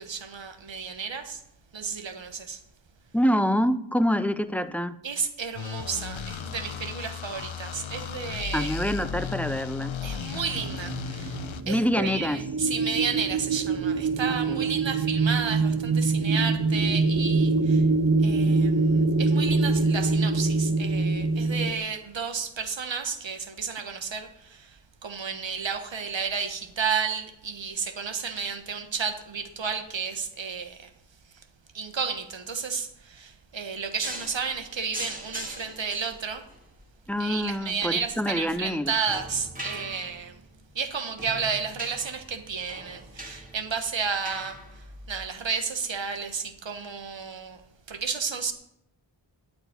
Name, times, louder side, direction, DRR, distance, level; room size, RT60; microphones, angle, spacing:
voice 1, 0.0-1.4 1.7-2.6 5.0-8.8 10.0-17.9 18.2-30.9 31.3-31.4 31.7-36.4 37.2-40.4 40.7-47.6 47.9-48.5, right 6 dB, 70° right, 1.4 m, -32 dB
voice 2, 3.1-5.0 8.5-9.9 11.7-12.4 14.5-14.6 37.1-38.9, equal, 5° left, 0.6 m, -26 dB
sound 1, 5.5-11.6, left 7 dB, 75° left, 0.8 m, -35 dB
sound 2, 10.5-21.7, right 3 dB, 45° right, 1.0 m, -24 dB
sound 3, 34.0-45.3, right 1 dB, 15° right, 2.0 m, -42 dB
9.2 x 8.2 x 9.4 m
wide cardioid pair, 80°, 47 cm